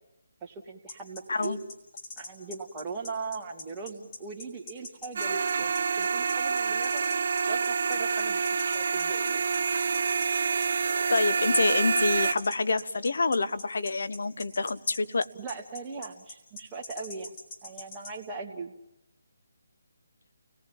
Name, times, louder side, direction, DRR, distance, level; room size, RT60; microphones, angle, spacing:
voice 1, 0.4-1.6 2.2-7.0 7.5-9.4 15.4-17.4 17.6-18.7, right 4 dB, 15° right, -2 dB, 2.3 m, -39 dB
sound 1, 0.9-18.1, left 2 dB, 30° left, 5.2 m, -43 dB
sound 2, 5.2-12.3, right 5 dB, 55° right, 0.8 m, -27 dB
voice 2, 11.1-15.3, left 3 dB, 70° left, 13 dB, 1.0 m, -27 dB
29.5 x 18.5 x 7.3 m, 0.91 s
figure-of-eight pair, 155°, 0 cm